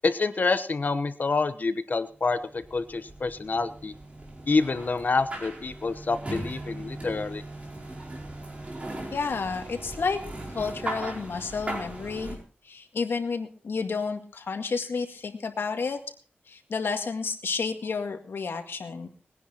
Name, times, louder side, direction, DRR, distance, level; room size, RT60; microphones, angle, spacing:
voice 1, 0.0-3.9 4.5-7.4, left 3 dB, 50° left, 11 dB, 1.0 m, -27 dB
sound 1, 2.3-12.4, right 1 dB, 35° right, 4.7 m, -38 dB
voice 2, 9.1-10.2 10.5-12.4 12.6-16.0 16.5-19.1, left 5 dB, 80° left, 6 dB, 2.0 m, -31 dB
20.5 x 10.0 x 4.4 m, 0.40 s
wide cardioid pair, 115°, 4 cm